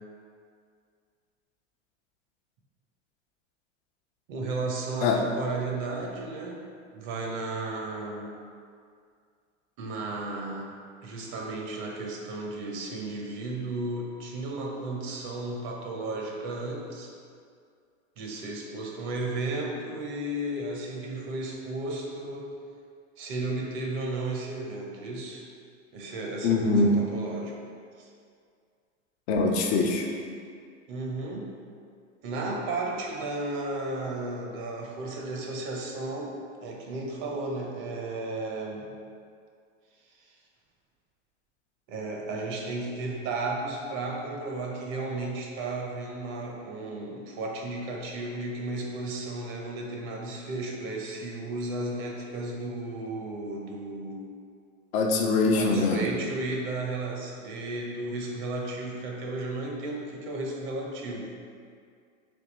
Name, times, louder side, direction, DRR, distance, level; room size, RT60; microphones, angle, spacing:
voice 1, 4.3-6.6 6.9-8.3 9.8-10.7 11.0-17.1 18.2-22.5 23.2-25.4 25.9-27.6 28.0-28.1 30.9-31.5 32.2-36.3 36.6-38.9 40.2-40.3 41.9-54.3 55.5-61.3, right 2 dB, 50° right, 0 dB, 0.9 m, -34 dB
voice 2, 26.4-26.9 29.3-30.1 54.9-56.0, left 3 dB, 55° left, 1 dB, 0.7 m, -23 dB
3.6 x 2.7 x 4.1 m, 2.2 s
hypercardioid pair, 95°, 38 cm